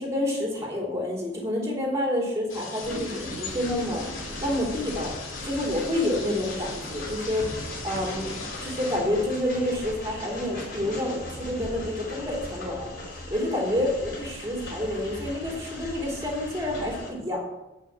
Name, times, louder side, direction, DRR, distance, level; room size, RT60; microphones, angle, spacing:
voice 1, 0.0-5.1 5.4-8.3 8.6-12.9 13.3-17.4, left 1 dB, 15° right, -2 dB, 3.3 m, -28 dB
sound 1, 2.5-9.0, left 4 dB, 70° left, 2.4 m, -40 dB
Train, 2.8-17.1, left 1 dB, 45° left, 5.2 m, -38 dB
11.0 x 5.8 x 8.8 m, 0.98 s
head